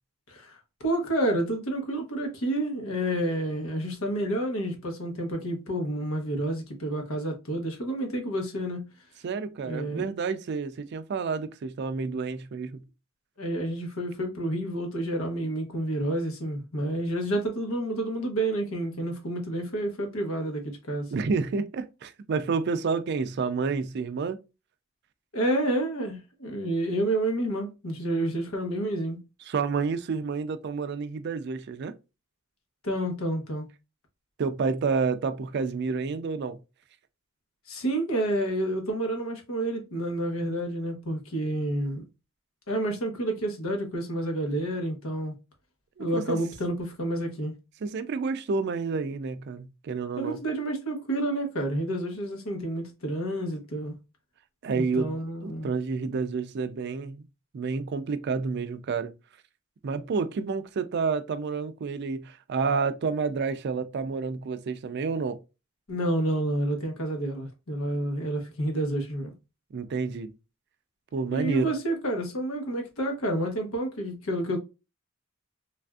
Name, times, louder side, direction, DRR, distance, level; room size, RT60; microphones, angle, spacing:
voice 1, 0.3-8.9 9.6-10.1 13.4-21.1 25.3-29.2 32.8-33.7 37.7-42.0 42.7-45.3 46.0-47.5 50.2-53.9 54.7-55.7 65.9-69.3 71.3-74.6, right 1 dB, 85° left, 0.9 m, -29 dB
voice 2, 9.2-12.8 21.1-24.4 29.5-31.9 34.4-36.6 46.0-46.4 47.8-50.4 54.6-55.1 55.4-57.3 57.5-59.1 59.8-65.4 69.7-70.3 71.1-71.7, right 4 dB, 55° right, 0.4 m, -29 dB
3.3 x 2.5 x 2.2 m
head